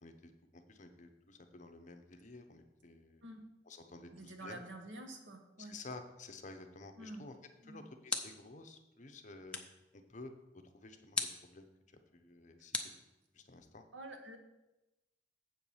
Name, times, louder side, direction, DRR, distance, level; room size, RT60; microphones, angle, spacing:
voice 1, 0.0-3.2 3.7-4.6 5.6-7.3 7.7-9.6 9.9-10.3 10.7-11.7 12.1-12.8 13.3-13.8, left 3 dB, 40° left, 6 dB, 0.8 m, -52 dB
voice 2, 4.1-5.8 7.0-7.3 7.6-7.9 13.9-14.4, right 1 dB, 80° right, 5 dB, 1.3 m, -48 dB
sound 1, 7.4-8.6 9.5-9.9 11.1-11.5 12.7-13.6, left 3 dB, 5° left, 0.6 m, -40 dB
7.8 x 4.6 x 7.1 m, 1.0 s
head